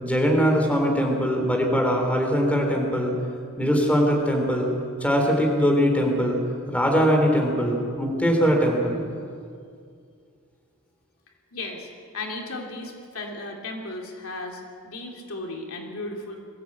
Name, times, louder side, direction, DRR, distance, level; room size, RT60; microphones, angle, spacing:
voice 1, 0.0-3.1 3.6-4.7 5.0-6.4 6.7-9.0, equal, 5° left, 1 dB, 3.2 m, -21 dB
voice 2, 11.5-11.9 12.1-16.4, left 2 dB, 75° left, 1 dB, 3.1 m, -35 dB
22.0 x 15.5 x 8.6 m, 2.3 s
head